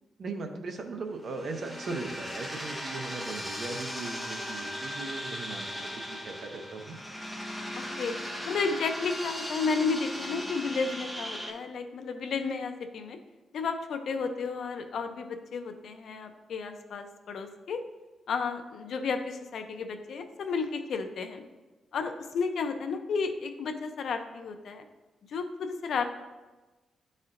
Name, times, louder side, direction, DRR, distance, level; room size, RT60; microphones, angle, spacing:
voice 1, 0.2-7.0, right 3 dB, 45° right, 4 dB, 0.6 m, -38 dB
sound 1, 1.2-11.5, equal, 5° right, 0.6 m, -38 dB
voice 2, 7.8-8.2 8.5-13.2 13.5-17.8 18.3-21.4 21.9-24.8 25.3-26.1, left 5 dB, 55° left, 6 dB, 0.5 m, -32 dB
10.5 x 4.2 x 2.5 m, 1.2 s
wide cardioid pair, 175°, 0 cm